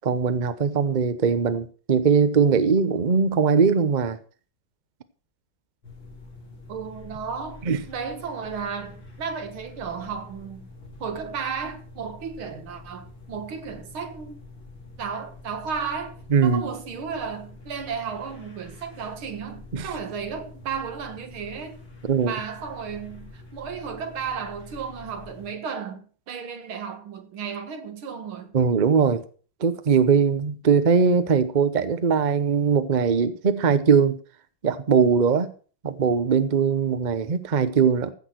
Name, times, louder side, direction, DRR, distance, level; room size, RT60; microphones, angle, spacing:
voice 1, 0.0-4.2 7.7-7.8 16.3-16.6 19.7-19.9 22.1-22.3 28.5-29.2 29.6-34.2 34.6-35.5 35.8-38.1, right 6 dB, 45° right, 0.6 m, -20 dB
sound 1, 5.8-25.5, left 3 dB, 70° left, 4.9 m, -46 dB
voice 2, 6.7-10.7 11.0-14.4 15.0-21.7 22.2-28.5, right 6 dB, 90° right, 2.4 m, -34 dB
15.5 x 6.2 x 6.3 m
omnidirectional pair, 2.2 m